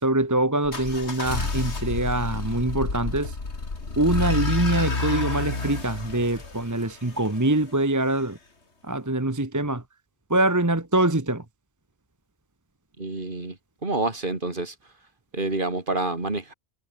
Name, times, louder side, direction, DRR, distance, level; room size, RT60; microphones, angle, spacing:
voice 1, 0.0-3.4 4.0-8.4 8.8-9.8 10.3-11.4, right 2 dB, 15° right, 1.3 m, -24 dB
sound 1, 0.6-7.5, left 3 dB, 65° left, 3.1 m, -29 dB
voice 2, 13.0-14.7 15.3-16.5, right 2 dB, 45° right, 2.9 m, -28 dB
omnidirectional pair, 1.2 m